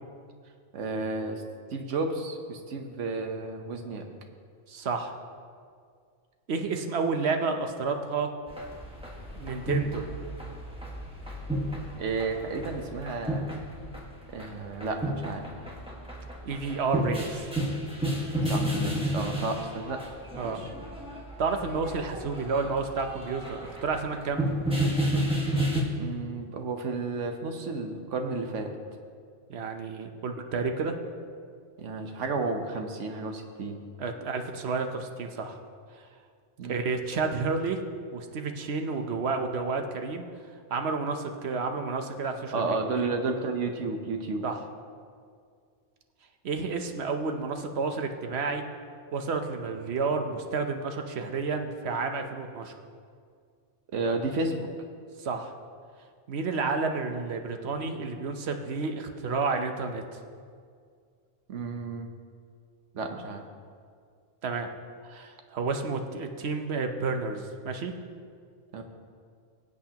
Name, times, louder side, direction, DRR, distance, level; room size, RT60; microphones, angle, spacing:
voice 1, 0.7-1.4 1.7-4.0 12.0-13.5 14.3-15.4 18.5-20.0 20.4-20.7 26.0-28.7 31.8-33.8 36.6-36.8 42.5-44.4 53.9-54.7 61.5-62.1 62.9-63.4 68.7-68.8, right 3 dB, 80° right, 5 dB, 1.3 m, -32 dB
voice 2, 4.7-5.1 6.5-8.3 9.4-10.1 16.4-17.4 20.3-20.6 21.4-24.5 29.5-31.0 34.0-35.6 36.6-37.8 38.1-40.2 40.7-43.1 44.4-44.6 46.4-48.6 49.1-52.8 55.2-55.5 56.3-60.0 64.4-64.7 65.0-67.9, right 4 dB, 65° right, 5 dB, 1.1 m, -30 dB
sound 1, 8.5-25.8, right 1 dB, 5° right, 1.5 m, -32 dB
21.0 x 8.2 x 2.9 m, 2.1 s
omnidirectional pair, 1.2 m